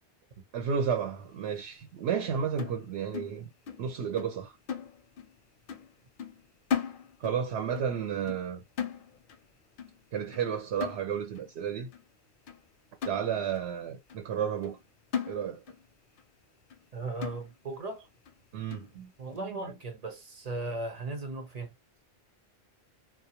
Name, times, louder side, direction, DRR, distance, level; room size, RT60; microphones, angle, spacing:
voice 1, 0.5-3.5 3.8-4.6 7.2-8.6 10.1-11.9 13.0-14.8 15.3-15.6 18.5-18.9, right 7 dB, 80° right, 0.8 m, -32 dB
sound 1, 2.6-3.9 4.2-4.4 4.7-5.4 5.7-5.9 6.2-7.5 7.8-8.0 8.3-9.5 9.8-10.0 10.3-10.5 10.8-11.4 11.9-12.0 12.5-12.6 13.0-13.7 14.1-14.2 14.6-14.8 15.1-15.9 16.2-16.3 16.7-16.8 17.2-17.8 18.3-18.4 18.7-18.9, left 7 dB, 60° left, 0.6 m, -37 dB
voice 2, 16.9-18.1 18.9-21.7, right 2 dB, 45° right, 0.6 m, -37 dB
2.3 x 2.1 x 2.8 m
omnidirectional pair, 1.1 m